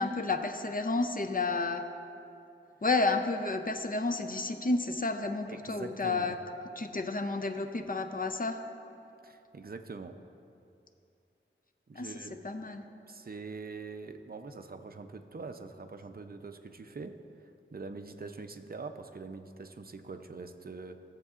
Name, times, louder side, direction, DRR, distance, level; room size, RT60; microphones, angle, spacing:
voice 1, 0.0-1.8 2.8-6.4 6.8-8.6 11.9-12.8, left 3 dB, 40° left, 7 dB, 0.6 m, -31 dB
voice 2, 5.5-6.3 9.2-10.2 11.9-12.3 13.1-17.2 17.7-21.0, right 4 dB, 45° right, 7 dB, 0.5 m, -43 dB
15.5 x 7.5 x 2.5 m, 2.6 s
wide cardioid pair, 50°, 21 cm